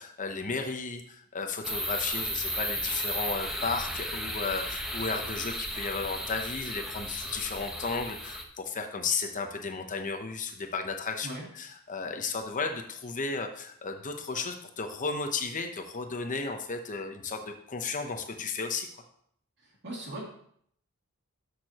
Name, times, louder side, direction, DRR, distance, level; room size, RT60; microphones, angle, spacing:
voice 1, 0.0-18.9, left 4 dB, 35° left, 5 dB, 0.8 m, -34 dB
sound 1, 1.6-8.4, equal, ahead, 1.0 m, -34 dB
voice 2, 19.6-20.3, right 1 dB, 55° right, -2 dB, 2.7 m, -39 dB
12.5 x 6.5 x 2.9 m, 0.65 s
head